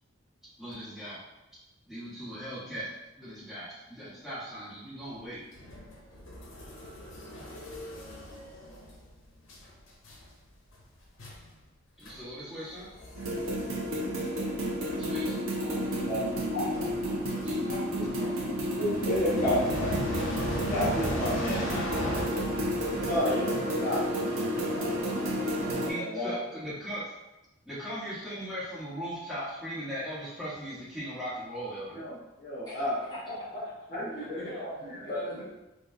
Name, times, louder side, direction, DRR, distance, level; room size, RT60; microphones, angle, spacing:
voice 1, 0.6-1.2 1.9-2.9 3.1-5.4 12.0-12.9 14.8-15.3 15.7-16.1 17.0-17.6 17.9-18.6 25.9-27.0 27.6-32.0, equal, ahead, -11 dB, 1.2 m, -39 dB
sound 1, 5.5-9.1 9.5-9.7 10.0-10.3 10.7-10.8 11.2-11.5 12.0-12.2 12.5-23.2, left 1 dB, 75° left, 0.7 m, -39 dB
sound 2, 13.2-25.9, equal, 85° right, 0.6 m, -31 dB
voice 2, 15.1-16.8 17.7-18.5 18.8-19.9 20.7-21.9 22.9-24.0 24.4-24.9 25.8-26.3 31.9-33.0 33.9-35.2, left 1 dB, 40° left, -8 dB, 1.2 m, -33 dB
voice 3, 33.0-35.5, equal, 20° left, -11 dB, 1.4 m, -40 dB
3.9 x 2.4 x 2.6 m, 0.99 s
head